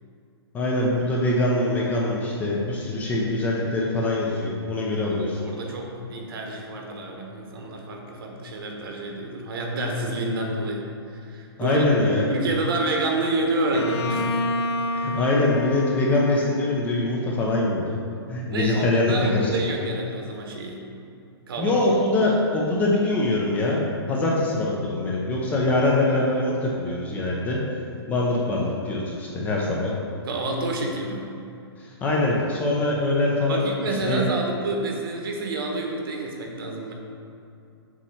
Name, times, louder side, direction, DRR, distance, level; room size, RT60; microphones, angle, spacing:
voice 1, 0.5-5.4 11.6-12.2 14.9-18.0 18.3-19.5 21.6-23.8 24.1-27.6 28.1-29.9 31.8-33.6 34.0-34.2, left 2 dB, 10° left, -3 dB, 0.5 m, -23 dB
voice 2, 5.2-10.9 11.1-11.8 12.3-14.7 18.5-20.8 21.5-21.8 30.2-31.3 33.5-36.9, right 2 dB, 55° right, 1 dB, 1.1 m, -28 dB
Bowed string instrument, 13.7-17.5, left 1 dB, 75° left, 0.5 m, -30 dB
7.1 x 2.9 x 5.6 m, 2.6 s
hypercardioid pair, 160°, 14 cm